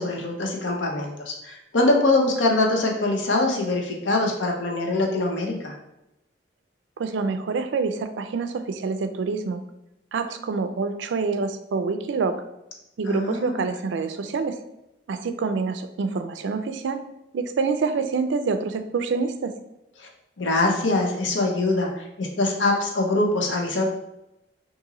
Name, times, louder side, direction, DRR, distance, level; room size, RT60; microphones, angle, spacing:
voice 1, 0.0-5.7 13.1-13.7 20.0-20.1 20.4-23.9, left 2 dB, 80° left, 1 dB, 0.7 m, -23 dB
voice 2, 7.0-9.6 10.1-12.4 13.0-14.5 15.1-17.0 17.3-19.5, right 4 dB, 75° right, 8 dB, 0.3 m, -26 dB
2.9 x 2.6 x 3.7 m, 0.89 s
head